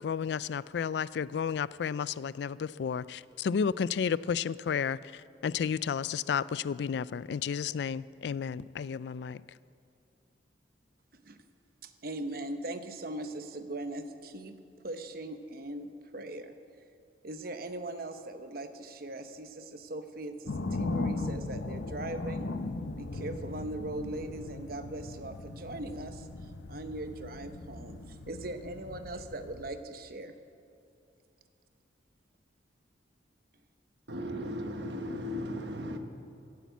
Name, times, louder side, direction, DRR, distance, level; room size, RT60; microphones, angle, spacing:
voice 1, 0.0-9.4, left 7 dB, 65° left, 18 dB, 0.3 m, -32 dB
voice 2, 11.8-14.6 14.8-16.5 17.2-22.5 23.0-26.3 26.7-30.4, right 1 dB, 55° right, 8 dB, 0.9 m, -40 dB
sound 1, 20.5-29.8, left 2 dB, 85° left, 0.7 m, -38 dB
voice 3, 34.1-36.0, equal, 70° right, 5 dB, 1.3 m, -36 dB
15.5 x 8.4 x 8.3 m, 2.6 s
head